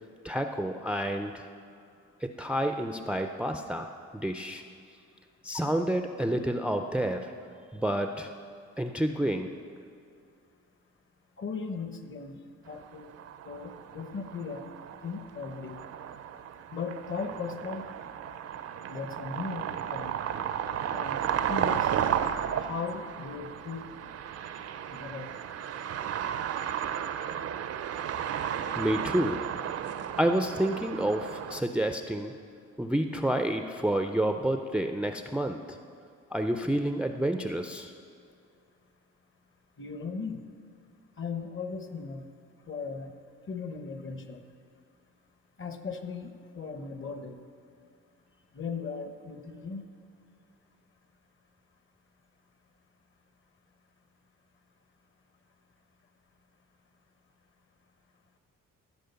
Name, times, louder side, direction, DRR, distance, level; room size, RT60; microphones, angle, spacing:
voice 1, 0.2-1.5 2.2-4.6 5.4-7.3 7.7-8.3 8.8-9.5 28.8-29.4 30.2-32.3 32.8-35.6 36.3-37.9, right 1 dB, 5° right, 6 dB, 0.4 m, -29 dB
voice 2, 11.4-12.4 12.7-13.1 13.4-14.7 15.0-15.8 16.7-17.9 18.9-20.2 20.9-21.2 21.5-21.9 22.6-23.9 24.9-25.3 39.8-40.4 41.2-42.3 42.7-43.1 43.5-44.4 45.6-47.4 48.5-49.8, left 5 dB, 40° left, 8 dB, 1.0 m, -37 dB
sound 1, 12.8-31.6, right 9 dB, 55° right, 0.6 m, -34 dB
14.0 x 5.1 x 6.9 m, 2.4 s
cardioid pair, 90°, 30 cm